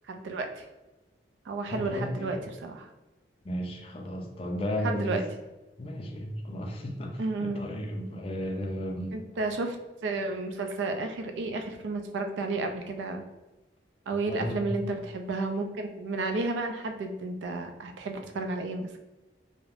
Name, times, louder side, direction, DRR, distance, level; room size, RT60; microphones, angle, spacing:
voice 1, 0.1-0.6 1.5-2.9 4.8-5.2 7.2-7.7 9.1-9.8 10.0-13.2 14.1-18.9, right 3 dB, 85° right, 5 dB, 0.3 m, -32 dB
voice 2, 1.7-2.4 3.4-5.2 5.8-9.2 14.3-14.9, equal, 30° left, 2 dB, 0.3 m, -34 dB
2.4 x 2.0 x 3.1 m, 1.1 s
head